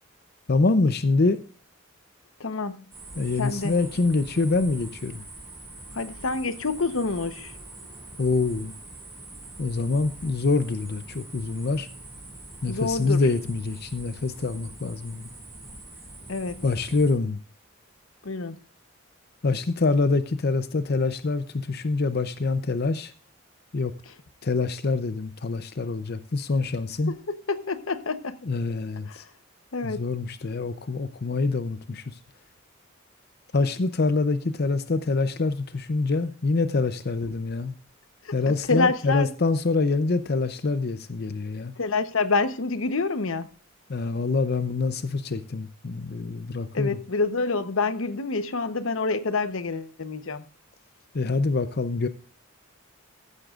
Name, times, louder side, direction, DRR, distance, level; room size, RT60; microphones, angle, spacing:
voice 1, 0.5-1.4 3.2-5.2 8.2-8.7 9.6-11.9 12.6-15.3 16.6-17.4 19.4-23.1 23.7-24.0 24.4-27.1 28.4-29.2 29.8-32.2 33.5-37.8 38.3-41.7 43.9-47.0 51.1-52.1, left 3 dB, 50° left, 0.6 m, -25 dB
voice 2, 2.4-2.8 3.4-3.8 5.9-7.5 12.7-13.2 16.3-16.6 18.2-18.6 27.1-28.4 29.1-29.3 29.7-30.1 38.2-39.3 41.8-43.5 46.7-50.4, left 3 dB, 80° left, 0.9 m, -27 dB
sound 1, 2.9-17.1, right 2 dB, 10° right, 5.5 m, -44 dB
15.0 x 11.5 x 2.5 m
head